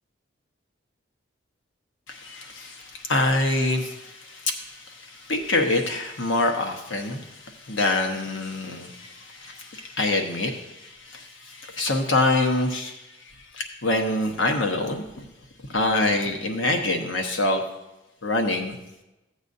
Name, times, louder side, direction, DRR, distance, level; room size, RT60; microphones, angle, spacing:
voice 1, 2.1-13.2 13.5-15.2 15.7-17.6 18.2-18.8, left 2 dB, 80° left, 3 dB, 1.1 m, -26 dB
15.0 x 8.1 x 2.7 m, 0.94 s
head